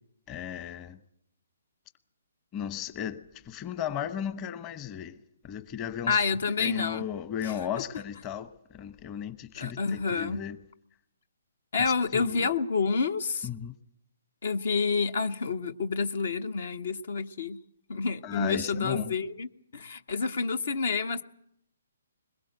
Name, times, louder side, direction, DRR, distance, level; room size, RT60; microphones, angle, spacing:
voice 1, 0.3-1.0 2.5-5.2 5.4-6.2 6.6-10.6 12.1-12.5 13.4-13.7 18.2-19.1, left 9 dB, 25° left, 1.0 m, -35 dB
voice 2, 6.1-7.1 7.4-7.5 9.5-10.4 11.7-13.5 14.4-17.6 17.9-19.5 19.7-21.2, left 4 dB, 65° left, 1.0 m, -28 dB
21.5 x 21.5 x 8.1 m
hypercardioid pair, 140°, 0 cm